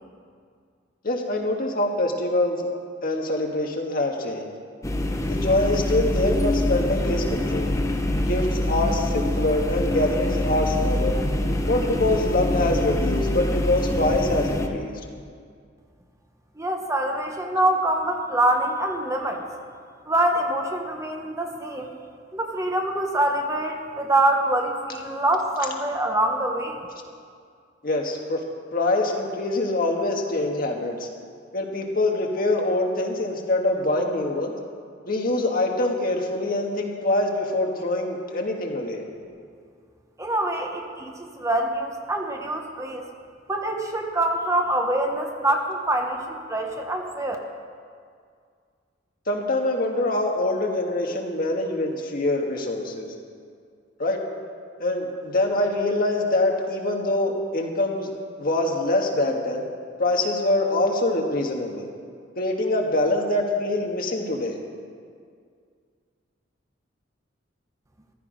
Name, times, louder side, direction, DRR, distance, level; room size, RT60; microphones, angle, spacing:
voice 1, 1.0-2.6 3.0-4.5 5.3-7.8 8.2-11.2 11.7-15.0 27.8-28.4 28.7-31.1 31.5-34.5 35.1-39.0 49.3-53.1 54.0-54.2 54.8-58.1 58.4-59.6 60.0-61.9 62.4-64.6, left 2 dB, 50° left, 1 dB, 1.6 m, -24 dB
sound 1, 4.8-14.7, left 1 dB, 15° left, 0.9 m, -25 dB
voice 2, 16.6-19.4 20.1-21.9 22.3-26.8 40.2-43.0 43.5-47.4, right 1 dB, 15° right, 2 dB, 1.0 m, -25 dB
14.5 x 12.5 x 5.1 m, 2.2 s
head